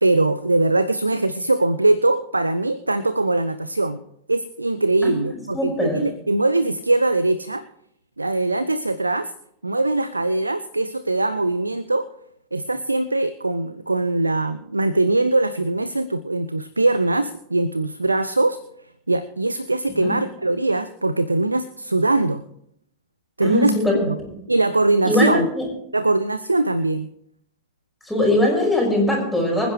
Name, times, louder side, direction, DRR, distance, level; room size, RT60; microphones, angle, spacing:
voice 1, 0.0-4.0 4.3-7.6 8.2-9.3 9.6-12.1 12.5-18.6 19.1-22.4 23.4-23.7 24.0-24.2 24.5-25.5 25.9-27.1, right 2 dB, 80° right, 14 dB, 0.5 m, -21 dB
voice 2, 5.0-6.0 19.9-20.1 23.4-24.0 24.3-24.4 25.0-25.6 28.0-29.7, left 1 dB, ahead, -3 dB, 6.0 m, -21 dB
25.0 x 10.0 x 3.2 m, 0.73 s
figure-of-eight pair, 90°, 0 cm